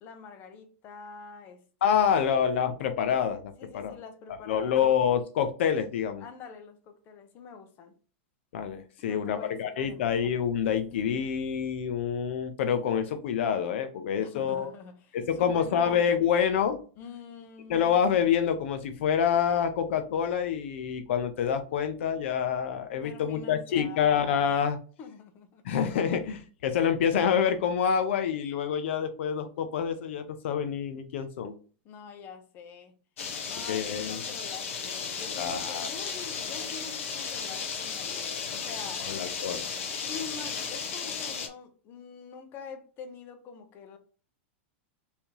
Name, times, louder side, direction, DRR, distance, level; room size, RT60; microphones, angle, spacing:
voice 1, 0.0-2.5 3.6-4.7 6.2-7.9 9.0-10.1 14.2-16.0 17.0-17.9 23.0-24.2 25.0-25.6 31.8-32.9 33.4-39.1 40.0-44.0, left 6 dB, 30° left, 0.8 m, -45 dB
voice 2, 1.8-4.0 4.5-6.2 8.5-14.7 15.1-16.8 17.7-24.8 25.6-31.5 33.7-34.2 35.4-35.9 36.4-36.5 39.1-39.6, left 8 dB, 65° left, 0.7 m, -27 dB
sound 1, 33.2-41.5, left 6 dB, 90° left, 1.2 m, -35 dB
4.4 x 3.5 x 2.9 m
supercardioid pair, 155°, 7 cm